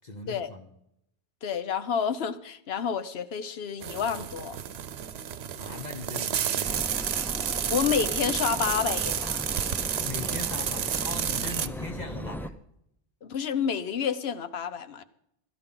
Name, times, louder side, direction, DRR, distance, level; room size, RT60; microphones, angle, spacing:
voice 1, 0.0-0.7 5.6-7.2 10.0-12.6, left 3 dB, 45° left, 1.1 m, -40 dB
voice 2, 1.4-4.6 7.7-9.4 13.2-15.0, left 7 dB, 75° left, 1.1 m, -29 dB
sound 1, 3.8-11.7, right 9 dB, 80° right, 1.0 m, -31 dB
sound 2, 6.6-12.5, equal, 5° left, 0.4 m, -37 dB
17.0 x 12.5 x 3.9 m
omnidirectional pair, 1.1 m